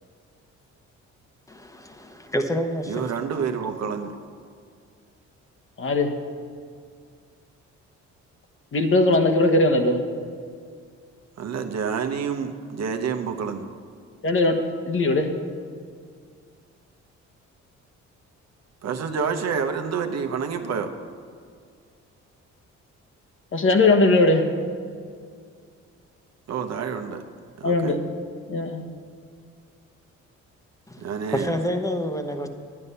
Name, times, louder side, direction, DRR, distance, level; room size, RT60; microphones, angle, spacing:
voice 1, 1.5-3.1 30.9-32.5, equal, 10° left, 6 dB, 1.0 m, -28 dB
voice 2, 2.9-4.1 11.4-13.6 18.8-20.9 26.5-27.2 27.6-28.0 31.0-31.5, right 6 dB, 60° right, 6 dB, 1.0 m, -28 dB
voice 3, 5.8-6.1 8.7-10.0 14.2-14.6 14.9-15.3 23.5-24.5 27.6-28.0 28.5-28.8, left 2 dB, 45° left, 5 dB, 1.2 m, -19 dB
9.9 x 9.7 x 5.5 m, 2.2 s
cardioid pair, 90°, 30 cm